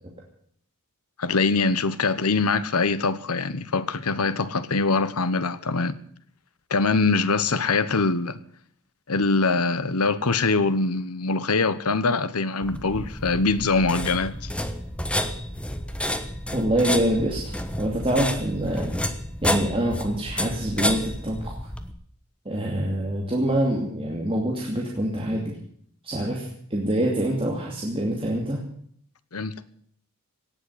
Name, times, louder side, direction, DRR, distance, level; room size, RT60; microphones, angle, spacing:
voice 1, 1.2-6.0 6.7-8.4 9.1-14.5 29.3-29.6, left 3 dB, 85° left, 1.1 m, -23 dB
sound 1, 12.6-21.9, left 1 dB, 5° left, 1.1 m, -30 dB
voice 2, 16.5-17.4 17.8-18.9 19.4-21.5 22.4-25.6 26.0-28.6, right 1 dB, 25° right, 2.6 m, -25 dB
18.0 x 7.7 x 9.7 m
head